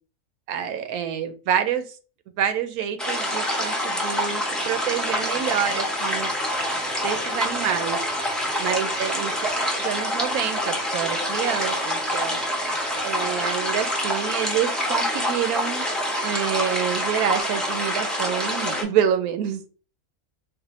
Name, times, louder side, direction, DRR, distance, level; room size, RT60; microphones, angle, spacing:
voice 1, 0.5-1.9 2.4-6.3 7.0-8.0 8.6-9.4 9.8-12.4 13.0-15.8 16.2-19.6, right 9 dB, 90° right, 9 dB, 1.1 m, -27 dB
sound 1, 3.0-18.8, equal, ahead, 0.4 m, -26 dB
3.4 x 2.1 x 4.1 m, 0.37 s
omnidirectional pair, 1.5 m